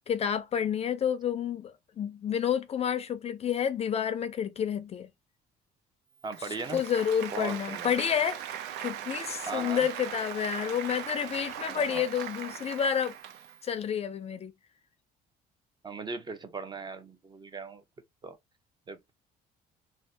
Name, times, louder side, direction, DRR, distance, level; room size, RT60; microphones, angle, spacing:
voice 1, 0.1-5.1 6.7-8.5 8.8-13.1 13.6-14.5, left 8 dB, 40° left, 0.4 m, -29 dB
voice 2, 6.2-6.8 7.3-7.9 9.4-9.9 11.7-12.1 15.8-17.8 18.2-18.4 18.9-19.1, right 4 dB, 25° right, 0.5 m, -38 dB
Applause, 6.2-13.7, right 10 dB, 85° right, 0.5 m, -40 dB
2.6 x 2.1 x 3.2 m
cardioid pair, 110°, 17 cm